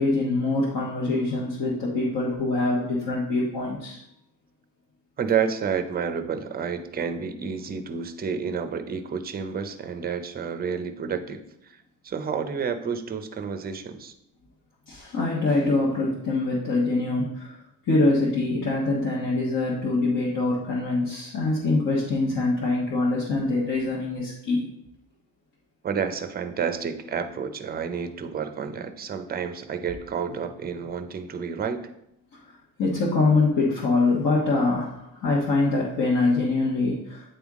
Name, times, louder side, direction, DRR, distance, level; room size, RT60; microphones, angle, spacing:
voice 1, 0.0-4.0 14.9-17.6 17.8-24.6 32.3-37.3, left 3 dB, 55° left, -5 dB, 1.3 m, -24 dB
voice 2, 5.2-14.1 25.8-31.8, right 6 dB, 25° right, 9 dB, 0.5 m, -30 dB
8.7 x 3.5 x 3.6 m, 0.80 s
cardioid pair, 125°, 37 cm